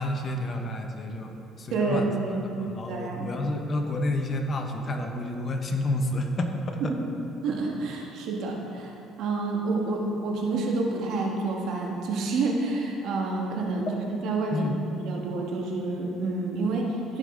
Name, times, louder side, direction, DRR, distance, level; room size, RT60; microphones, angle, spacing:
voice 1, 0.0-2.1 2.6-6.9 14.5-14.7, left 1 dB, 35° left, 4 dB, 0.9 m, -30 dB
voice 2, 1.7-2.4 2.9-3.3 7.4-14.7 15.0-17.2, right 3 dB, 70° right, 0 dB, 1.5 m, -28 dB
14.5 x 5.3 x 3.8 m, 2.7 s
cardioid pair, 105°, 0 cm